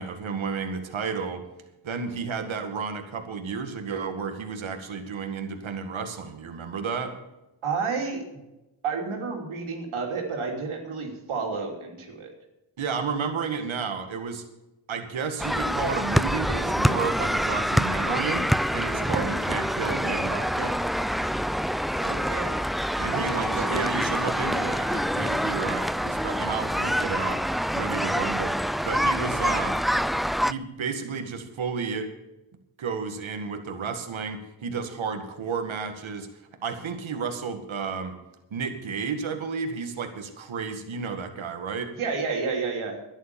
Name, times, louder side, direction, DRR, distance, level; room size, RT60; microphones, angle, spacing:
voice 1, 0.0-1.4 1.8-7.2 12.8-14.4 14.9-18.5 18.7-21.3 23.0-27.4 27.7-28.6 28.8-29.8 30.4-32.1 32.8-36.3 36.6-38.2 38.5-41.9, right 5 dB, 75° right, 6 dB, 2.0 m, -32 dB
voice 2, 7.6-8.2 8.8-12.3 19.1-19.3 22.0-22.5 23.1-23.9 42.0-43.0, right 4 dB, 90° right, 1 dB, 3.2 m, -30 dB
sound 1, 15.4-30.5, equal, ahead, 0.4 m, -26 dB
11.5 x 10.5 x 6.9 m, 0.96 s
cardioid pair, 50°, 48 cm